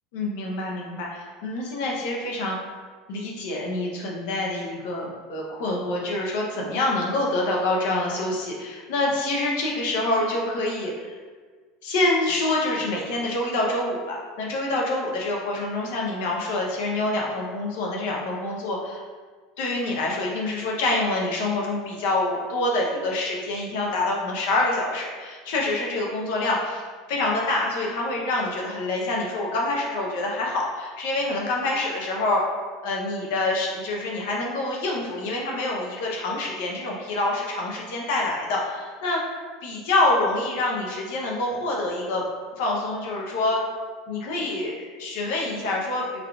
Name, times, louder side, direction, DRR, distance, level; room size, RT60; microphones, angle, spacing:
voice 1, 0.1-2.6 3.1-11.1 11.8-19.0 19.6-32.4 32.8-39.2 39.6-42.2 42.6-43.6 44.1-46.2, left 2 dB, 75° left, -2 dB, 0.8 m, -26 dB
3.5 x 3.4 x 2.4 m, 1.5 s
cardioid pair, 165°, 0 cm